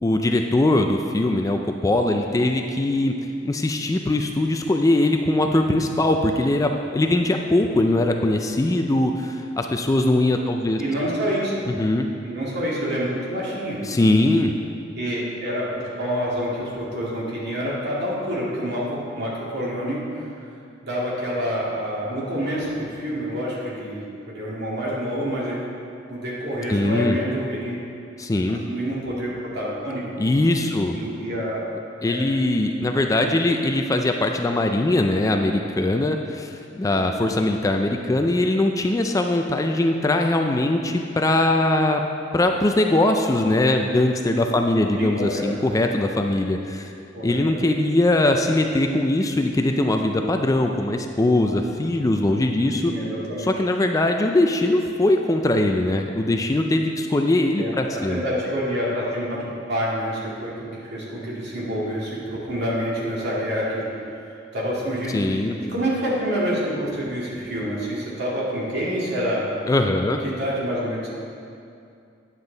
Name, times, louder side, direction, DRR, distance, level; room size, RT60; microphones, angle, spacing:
voice 1, 0.0-3.1 3.4-10.8 11.6-12.1 13.9-14.5 26.7-27.2 28.2-28.6 30.2-30.9 32.0-42.0 42.3-46.9 47.2-52.9 53.5-58.2 65.1-65.5 69.7-70.2, left 1 dB, 15° left, 4 dB, 0.4 m, -21 dB
voice 2, 10.8-11.7 12.2-13.8 15.0-20.2 20.8-25.6 26.1-27.8 28.7-30.3 30.9-31.7 32.1-32.2 33.2-33.4 36.8-37.0 45.0-45.5 47.1-47.5 52.9-53.5 57.6-57.7 58.1-63.8 64.2-65.4 65.7-69.5 70.2-71.1, equal, 60° right, -6 dB, 2.2 m, -27 dB
9.6 x 7.4 x 3.9 m, 2.5 s
head